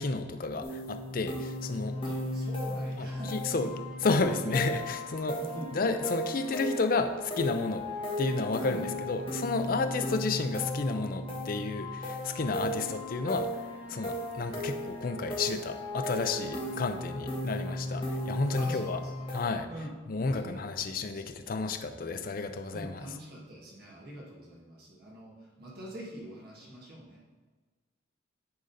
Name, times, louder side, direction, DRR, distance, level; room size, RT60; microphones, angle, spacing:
voice 1, 0.0-2.0 3.0-3.7 4.0-5.4 5.7-7.9 8.2-13.5 13.9-19.0 19.3-19.7 20.1-23.0, left 3 dB, 45° left, 8 dB, 0.5 m, -31 dB
sound 1, 0.6-19.4, left 1 dB, 25° left, 1.5 m, -36 dB
voice 2, 2.0-3.7 4.4-4.6 5.4-5.7 8.6-8.8 12.6-12.8 14.1-14.3 18.6-19.3 19.7-20.0 20.3-20.8 21.1-21.2 22.7-27.2, right 1 dB, 50° right, -4 dB, 1.9 m, -44 dB
9.8 x 3.8 x 4.0 m, 1.4 s
head